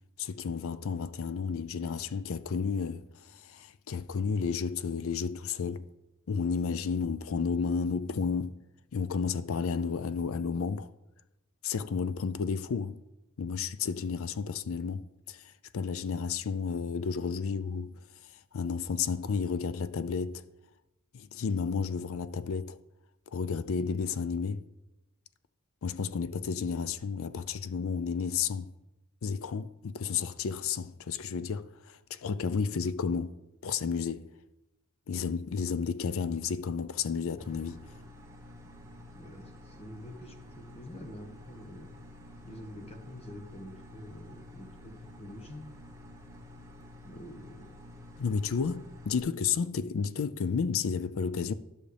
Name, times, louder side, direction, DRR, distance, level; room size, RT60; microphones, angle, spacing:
voice 1, 0.2-5.9 6.3-8.6 8.9-10.9 11.6-13.0 13.4-17.9 18.5-20.4 21.1-22.8 23.3-24.6 25.8-28.7 29.2-33.3 33.6-34.3 35.1-37.9 48.2-51.5, left 5 dB, 70° left, 0.4 m, -32 dB
sound 1, 37.4-49.2, left 1 dB, 15° right, 1.2 m, -50 dB
voice 2, 39.1-41.9 42.4-45.6 47.0-47.7, left 1 dB, 30° left, 1.2 m, -47 dB
13.0 x 6.4 x 3.4 m
head